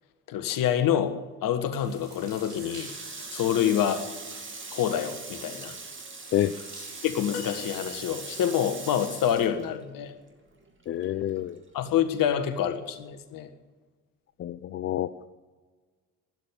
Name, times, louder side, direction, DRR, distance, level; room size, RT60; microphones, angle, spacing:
voice 1, 0.3-2.9 3.3-4.1 4.7-5.7 7.0-10.1 11.7-13.5, left 9 dB, 45° left, 8 dB, 1.6 m, -27 dB
sound 1, 1.8-7.1, right 2 dB, 90° right, 2.9 m, -50 dB
Water tap faucet, 2.4-10.3 10.6-11.9, right 4 dB, 25° right, 2.4 m, -41 dB
sound 2, 7.3-8.7 11.1-11.3 12.6-12.7, left 6 dB, 75° left, 1.7 m, -42 dB
voice 2, 10.9-11.6 14.4-15.3, left 11 dB, 30° left, 13 dB, 0.5 m, -28 dB
12.5 x 11.0 x 10.0 m, 1.3 s
figure-of-eight pair, 55°, 45 cm